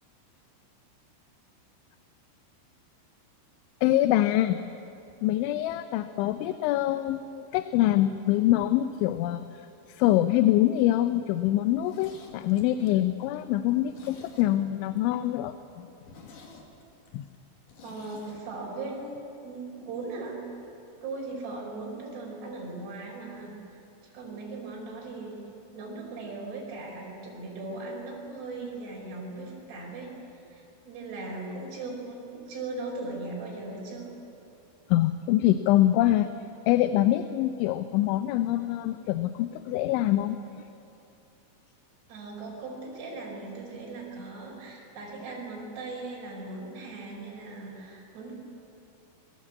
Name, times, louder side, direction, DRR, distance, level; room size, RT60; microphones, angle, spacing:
voice 1, 3.8-4.6 5.2-9.5 9.9-15.9 17.1-17.3 34.9-36.3 36.7-40.4, left 14 dB, 85° left, 10 dB, 3.1 m, -24 dB
Zipper (clothing), 11.7-14.9 15.2-15.3 15.6-15.7 16.0-18.4 18.7-18.8, left 4 dB, 45° left, 3.8 m, -51 dB
voice 2, 17.8-20.5 21.0-23.8 24.1-25.4 25.7-30.1 30.5-34.2 42.1-48.3, right 3 dB, 60° right, -3 dB, 7.1 m, -38 dB
26.5 x 22.5 x 8.6 m, 2.7 s
omnidirectional pair, 5.5 m